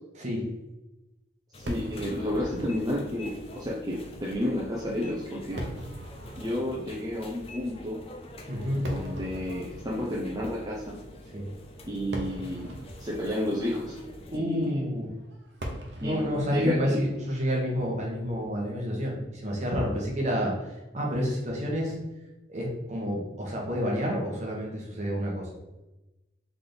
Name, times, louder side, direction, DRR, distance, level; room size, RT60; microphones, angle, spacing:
voice 1, 0.2-0.5 8.5-8.9 11.3-11.5 14.3-15.1 16.0-22.0 22.5-25.5, equal, 40° right, -2 dB, 1.1 m, -29 dB
sound 1, 1.5-14.4, left 1 dB, 30° left, 0.5 m, -45 dB
voice 2, 1.5-5.6 6.4-8.0 8.7-11.0 11.8-12.7 13.0-14.0 14.3-14.8 16.0-17.1, left 1 dB, 20° right, -5 dB, 0.7 m, -31 dB
Fireworks, 1.7-19.0, equal, 75° right, 0.8 m, -43 dB
3.7 x 3.4 x 3.9 m, 1.0 s
head